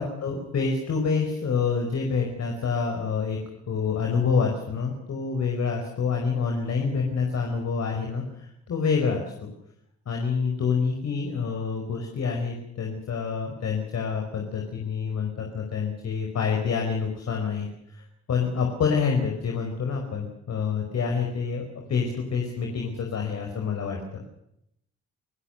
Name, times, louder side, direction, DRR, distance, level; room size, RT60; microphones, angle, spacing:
voice 1, 0.0-3.4 3.7-9.5 10.1-17.7 18.0-18.1 18.3-21.6 21.9-24.2, left 5 dB, 60° left, 2 dB, 5.2 m, -27 dB
28.5 x 16.5 x 6.6 m, 0.77 s
cardioid pair, 90°, 30 cm